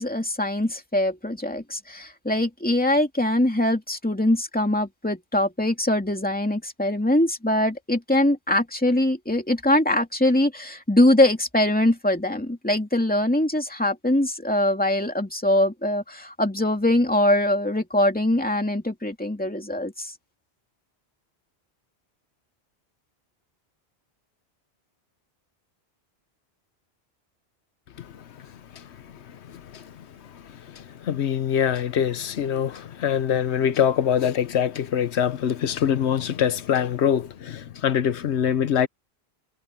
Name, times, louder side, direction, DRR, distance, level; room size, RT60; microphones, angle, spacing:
voice 1, 0.0-20.1, left 1 dB, 10° left, 2.6 m, -22 dB
voice 2, 29.5-29.8 30.7-38.9, left 9 dB, 85° left, 1.1 m, -24 dB
omnidirectional pair, 1.1 m